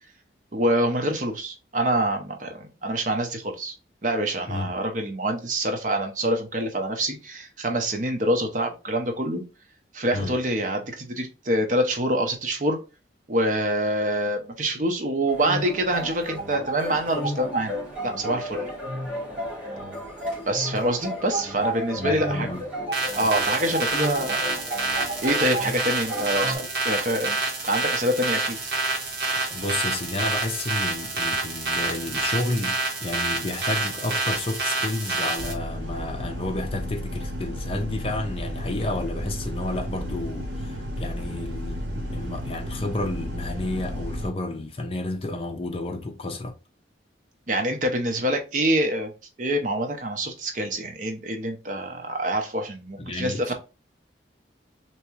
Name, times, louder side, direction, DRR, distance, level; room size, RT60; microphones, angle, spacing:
voice 1, 0.5-3.7 4.0-9.4 9.9-12.8 13.3-17.8 18.0-18.7 20.5-22.5 23.1-24.4 25.2-27.4 27.6-28.6 47.5-49.1 49.4-53.5, right 1 dB, 45° right, 0.7 m, -26 dB
sound 1, 15.3-26.6, right 1 dB, 5° right, 1.6 m, -32 dB
voice 2, 22.0-22.6 29.5-46.6 52.9-53.5, left 2 dB, 30° left, 0.5 m, -31 dB
sound 2, 22.9-35.5, right 3 dB, 60° right, 1.2 m, -28 dB
sound 3, 35.4-44.3, equal, 90° right, 0.8 m, -33 dB
3.4 x 3.0 x 3.1 m
head